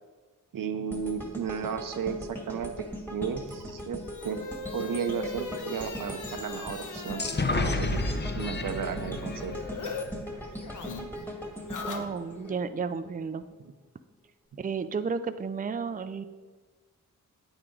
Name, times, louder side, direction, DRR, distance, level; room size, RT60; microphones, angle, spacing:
voice 1, 0.5-2.9 3.1-4.4 4.7-7.3 7.6-9.5, right 7 dB, 85° right, 7 dB, 0.8 m, -34 dB
sound 1, 0.9-13.1 13.5-13.7, equal, 5° left, 1.7 m, -40 dB
sound 2, 3.4-10.0 10.3-12.6, left 4 dB, 70° left, 1.1 m, -40 dB
sound 3, 7.2-10.9, left 2 dB, 35° left, 0.8 m, -31 dB
voice 2, 11.8-13.4 14.6-16.2, right 5 dB, 25° right, 10 dB, 0.5 m, -32 dB
9.0 x 8.9 x 3.9 m, 1.4 s
cardioid pair, 75°, 32 cm